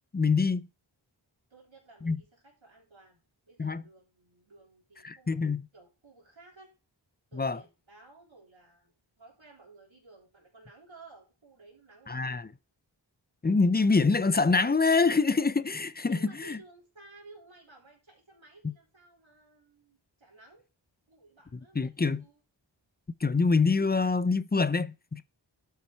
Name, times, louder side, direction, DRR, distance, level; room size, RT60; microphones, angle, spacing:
voice 1, 0.1-0.7 2.0-2.2 3.6-3.8 5.0-5.7 7.3-7.6 12.1-12.5 13.4-16.6 18.6-18.7 21.8-22.2 23.2-25.2, left 4 dB, 20° left, 0.4 m, -25 dB
voice 2, 1.5-6.7 7.3-12.5 16.1-20.7 21.1-22.4, right 3 dB, 80° right, 3.6 m, -55 dB
11.5 x 5.8 x 4.4 m
wide cardioid pair, 55°, 46 cm